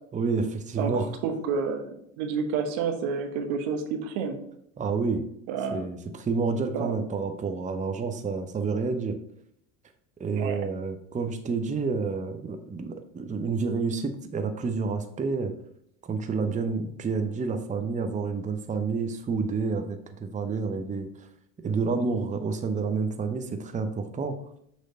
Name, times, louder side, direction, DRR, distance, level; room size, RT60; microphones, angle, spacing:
voice 1, 0.1-1.1 4.8-5.2 5.7-9.2 10.2-15.5 16.1-21.3 21.6-24.4, right 4 dB, 20° right, 7 dB, 0.7 m, -29 dB
voice 2, 1.2-4.4 5.5-5.8 6.7-6.9 10.4-10.6, right 5 dB, 70° right, 6 dB, 1.2 m, -29 dB
6.5 x 3.2 x 5.3 m, 0.72 s
hypercardioid pair, 85°, 40 cm